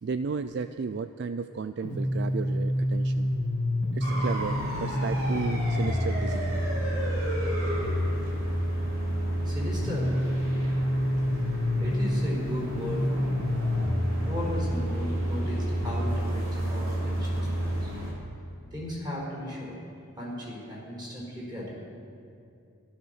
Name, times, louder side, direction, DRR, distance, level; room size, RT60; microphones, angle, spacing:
voice 1, 0.0-3.3 3.9-6.6, right 5 dB, 50° right, 11 dB, 0.3 m, -34 dB
sound 1, 1.8-17.8, equal, 65° left, 2.5 m, -28 dB
sound 2, 4.0-18.1, equal, 75° right, 3.6 m, -36 dB
voice 2, 9.4-10.4 11.8-13.4 14.2-17.9 18.7-19.8 20.2-21.7, left 1 dB, 20° right, -5 dB, 4.4 m, -36 dB
15.5 x 12.5 x 6.5 m, 2.6 s
head